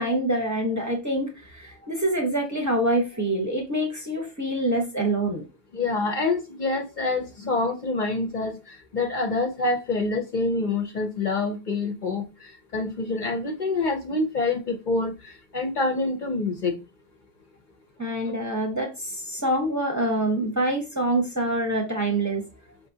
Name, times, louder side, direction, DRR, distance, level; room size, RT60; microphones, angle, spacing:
voice 1, 0.0-5.4 18.0-22.5, right 1 dB, 20° right, 0.8 m, -26 dB
voice 2, 5.7-8.6 8.9-12.2 12.7-15.1 15.5-16.7, left 3 dB, 50° left, 0.8 m, -26 dB
5.1 x 3.3 x 2.7 m
omnidirectional pair, 1.1 m